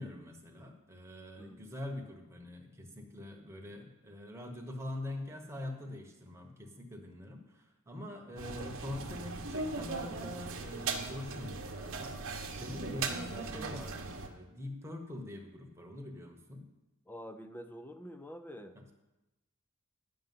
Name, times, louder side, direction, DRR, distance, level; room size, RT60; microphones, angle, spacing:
voice 1, 0.0-16.6 18.7-18.9, left 1 dB, 10° right, 2 dB, 1.2 m, -44 dB
sound 1, 8.4-14.3, right 4 dB, 60° right, 1.0 m, -39 dB
voice 2, 17.1-18.8, equal, 10° left, 9 dB, 0.5 m, -47 dB
10.5 x 5.4 x 7.7 m, 1.0 s
head